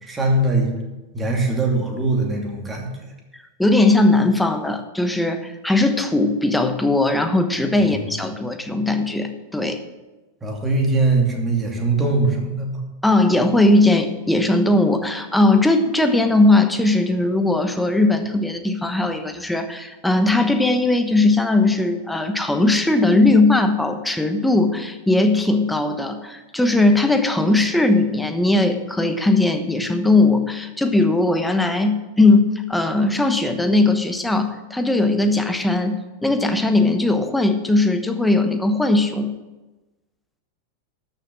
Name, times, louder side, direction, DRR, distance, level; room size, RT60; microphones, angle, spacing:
voice 1, 0.0-0.7 1.1-3.0 7.8-8.0 10.4-12.8, right 2 dB, 15° right, 1 dB, 2.6 m, -21 dB
voice 2, 3.6-9.8 13.0-39.3, left 2 dB, 5° left, 7 dB, 1.1 m, -19 dB
13.0 x 6.6 x 7.4 m, 1.1 s
figure-of-eight pair, 90°, 0 cm